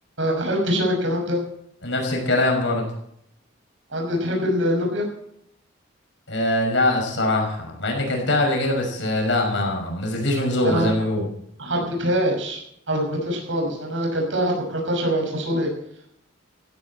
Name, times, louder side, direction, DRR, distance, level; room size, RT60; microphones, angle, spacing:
voice 1, 0.2-1.4 3.9-5.1 10.6-10.9 11.6-15.7, equal, 75° right, 0 dB, 6.0 m, -24 dB
voice 2, 1.8-2.9 6.3-11.3, left 1 dB, 70° left, 1 dB, 5.8 m, -22 dB
16.5 x 15.5 x 4.3 m, 0.72 s
head